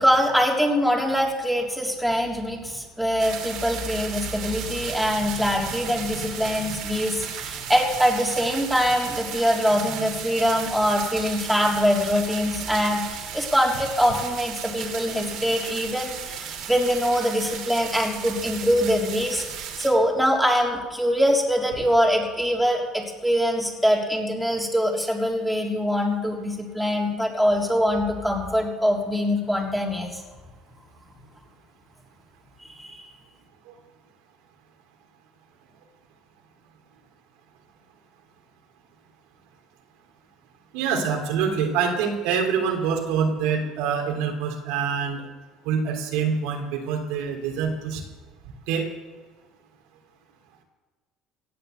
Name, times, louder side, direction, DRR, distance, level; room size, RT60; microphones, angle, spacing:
voice 1, 0.0-30.2 32.6-33.1, equal, ahead, -1 dB, 3.5 m, -23 dB
sound 1, 3.2-19.9, right 8 dB, 65° right, 2.8 m, -35 dB
voice 2, 40.7-45.2 45.6-48.0 48.7-48.9, right 6 dB, 80° right, 2 dB, 3.2 m, -25 dB
17.0 x 9.4 x 7.9 m, 1.3 s
supercardioid pair, 105°, 0 cm